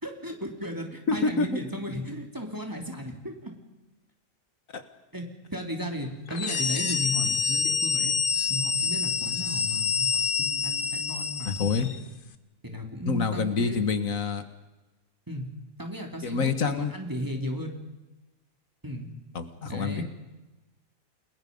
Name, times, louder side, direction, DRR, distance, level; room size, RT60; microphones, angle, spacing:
voice 1, 0.0-3.5 5.1-5.2 5.5-8.2 8.5-10.1 10.4-12.0 12.6-13.9 15.3-15.5 15.8-17.8 18.8-19.2 19.6-20.0, left 1 dB, 15° right, 2 dB, 3.2 m, -35 dB
sound 1, 6.3-12.0, left 6 dB, 45° left, 1.2 m, -27 dB
voice 2, 11.5-11.9 13.1-14.4 16.2-16.9 19.4-20.0, left 5 dB, 80° left, 10 dB, 1.9 m, -27 dB
29.5 x 20.5 x 5.4 m, 1.1 s
omnidirectional pair, 1.4 m